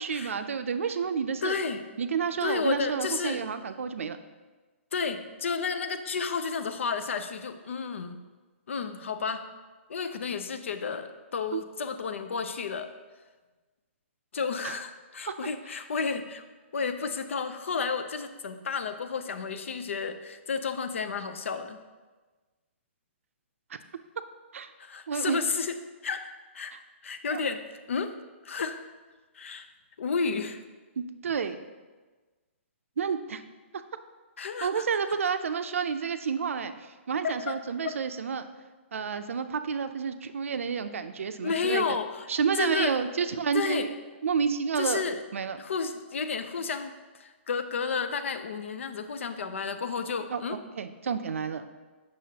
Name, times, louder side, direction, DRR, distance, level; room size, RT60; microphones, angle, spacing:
voice 1, 0.0-1.5 2.0-4.2 11.5-11.6 14.6-14.7 24.5-24.7 25.1-25.4 27.3-27.5 31.0-31.6 33.0-33.4 34.6-38.5 38.9-42.0 42.3-43.9 44.2-45.0 45.3-45.6 50.3-50.4 50.8-51.7, right 6 dB, 85° right, 10 dB, 0.5 m, -30 dB
voice 2, 1.4-1.8 2.4-3.4 4.9-8.2 8.7-9.5 9.9-12.9 14.3-16.4 16.7-21.8 24.8-25.8 26.0-26.8 27.0-28.1 28.4-28.9 29.3-29.7 30.0-30.6 34.4-34.8 37.2-37.6 37.8-37.9 41.4-42.3 42.5-43.0 43.5-43.9 44.8-45.2 45.6-50.6, left 5 dB, 70° left, 9 dB, 0.5 m, -32 dB
7.5 x 6.1 x 2.8 m, 1.3 s
hypercardioid pair, 175°, 7 cm